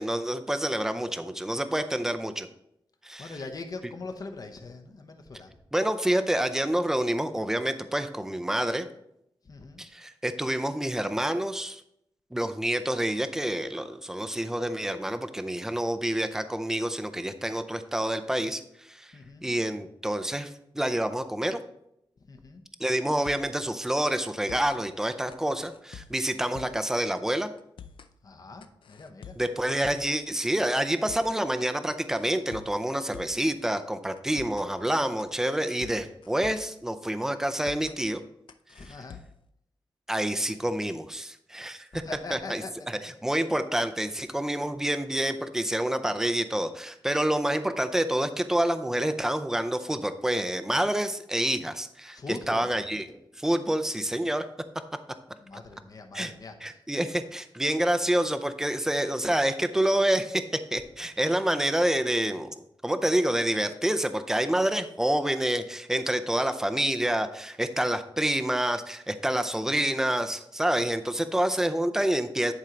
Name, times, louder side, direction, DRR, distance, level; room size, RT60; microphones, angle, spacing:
voice 1, 0.0-2.5 3.0-3.3 5.7-8.9 9.8-11.8 12.3-19.1 19.4-21.6 22.8-27.5 29.4-38.2 40.1-42.0 42.3-42.6 42.9-52.2 52.5-54.5 56.1-56.3 56.6-60.4 60.7-62.6 62.8-72.5, right 1 dB, 5° right, 9 dB, 0.5 m, -28 dB
voice 2, 3.2-5.5 9.4-9.8 19.1-19.4 22.3-22.6 28.2-29.4 38.8-39.2 41.9-42.9 52.1-52.8 55.4-56.8, left 3 dB, 45° left, 6 dB, 0.9 m, -41 dB
sound 1, 23.1-23.6 23.9-24.0 24.3-24.8 25.3-26.9 27.2-27.3 27.6-28.1 28.6-30.2 30.5-30.6 30.9-31.4 31.9-33.5 33.8-33.9 34.2-34.7 35.2-36.8 37.0-37.1 37.5-38.0 38.5-39.5, left 7 dB, 75° left, 0.5 m, -47 dB
10.5 x 4.5 x 3.8 m, 0.78 s
wide cardioid pair, 125°, 9 cm